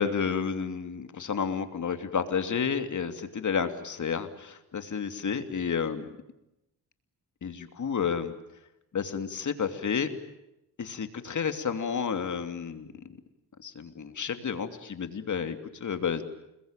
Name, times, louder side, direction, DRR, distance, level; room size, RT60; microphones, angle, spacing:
voice 1, 0.0-6.0 7.4-8.4 8.9-10.1 10.8-12.9 13.6-16.2, left 6 dB, 50° left, 8 dB, 3.0 m, -31 dB
29.5 x 21.5 x 9.0 m, 0.87 s
cardioid pair, 100°, 38 cm